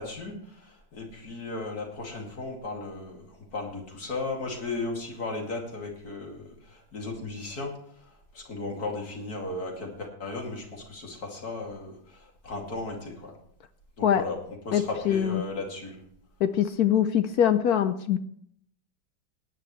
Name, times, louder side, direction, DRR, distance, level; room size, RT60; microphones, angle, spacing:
voice 1, 0.0-13.3 14.0-14.4 14.6-16.0, left 3 dB, 50° left, 0 dB, 3.0 m, -36 dB
voice 2, 14.7-15.4 16.4-18.2, left 9 dB, 70° left, 11 dB, 0.9 m, -23 dB
18.0 x 10.5 x 3.2 m, 0.64 s
omnidirectional pair, 2.1 m